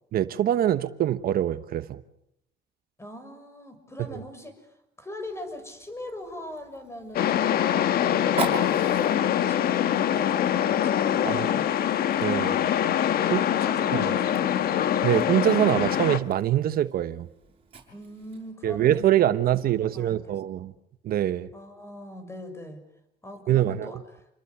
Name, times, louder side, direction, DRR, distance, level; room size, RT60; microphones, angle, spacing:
voice 1, 0.1-2.0 11.2-11.5 12.2-12.6 13.3-13.4 13.9-14.2 15.0-17.3 18.6-20.7 21.0-21.5 23.5-23.9, right 11 dB, 60° right, 1.1 m, -24 dB
voice 2, 3.0-11.7 13.2-14.8 17.9-19.0 19.5-20.7 21.5-22.8 23.2-24.2, left 1 dB, 15° left, 6.5 m, -41 dB
Fire, 5.2-18.5, right 3 dB, 35° right, 7.7 m, -42 dB
sound 1, 7.1-16.2, left 10 dB, 65° left, 1.6 m, -24 dB
29.0 x 22.5 x 8.4 m
cardioid pair, 110°, 17 cm